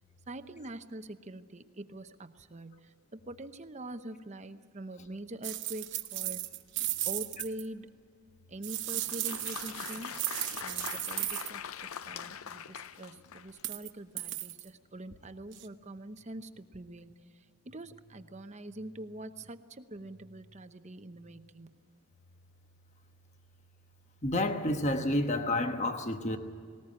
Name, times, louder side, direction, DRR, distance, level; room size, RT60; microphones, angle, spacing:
voice 1, 0.3-6.4 7.0-7.9 8.5-10.1 10.6-21.7, right 1 dB, 30° right, 0.9 m, -44 dB
sound 1, 5.4-7.7 8.6-11.5 13.5-13.9 14.2-14.7 15.5-15.7, right 14 dB, 55° right, 1.0 m, -35 dB
Applause, 8.8-13.7, left 8 dB, 80° left, 0.6 m, -43 dB
voice 2, 24.2-26.4, left 1 dB, 35° left, 1.2 m, -29 dB
19.5 x 19.5 x 8.6 m
head